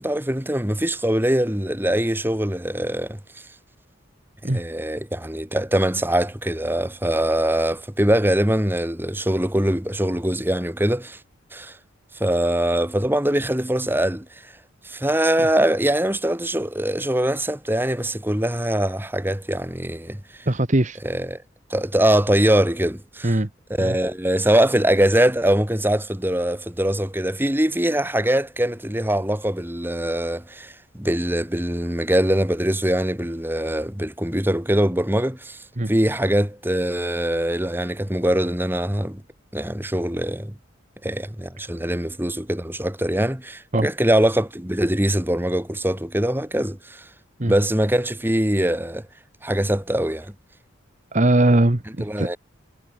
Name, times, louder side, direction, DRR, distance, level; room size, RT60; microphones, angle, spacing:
voice 1, 0.0-3.4 4.4-11.2 11.5-11.8 12.1-14.5 14.8-20.5 21.0-21.4 21.7-23.4 23.7-39.2 39.5-40.6 41.0-47.1 47.4-49.0 49.4-50.3 52.0-52.4, right 1 dB, 10° right, 2.1 m, -22 dB
voice 2, 20.5-21.0 23.2-23.5 23.8-24.0 35.8-35.9 43.7-43.9 47.4-47.5 51.1-52.3, right 1 dB, 35° right, 1.3 m, -20 dB
head